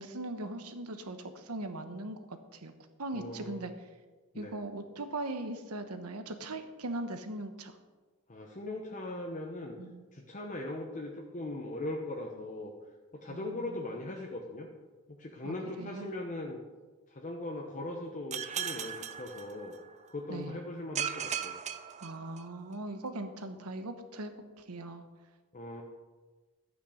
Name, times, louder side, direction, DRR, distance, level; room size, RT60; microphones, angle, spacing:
voice 1, 0.0-3.7 4.4-7.8 9.8-10.1 13.3-13.9 15.4-16.1 20.3-20.6 22.0-24.3 24.6-25.0, right 2 dB, 80° right, 8 dB, 1.1 m, -40 dB
voice 2, 3.1-3.7 4.3-4.5 8.3-9.7 10.1-12.7 13.1-14.7 15.1-16.6 17.1-19.7 20.1-21.6 25.5-25.8, left 2 dB, 35° left, 0 dB, 0.9 m, -39 dB
sound 1, 18.3-20.1 20.9-22.7, right 8 dB, 30° right, 0.6 m, -37 dB
12.5 x 8.8 x 5.1 m, 1.3 s
head